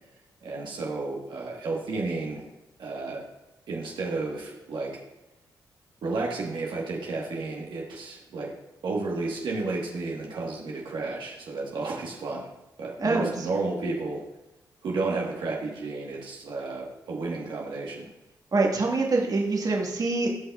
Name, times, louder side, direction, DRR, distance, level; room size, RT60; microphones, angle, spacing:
voice 1, 0.4-2.5 2.8-3.3 3.7-5.0 6.0-8.5 8.8-14.2 14.8-18.1, right 3 dB, 70° right, -2 dB, 1.3 m, -32 dB
voice 2, 13.0-13.3 18.5-20.3, right 3 dB, 45° right, -1 dB, 1.5 m, -24 dB
14.0 x 5.4 x 2.3 m, 1.0 s
supercardioid pair, 55°, 8 cm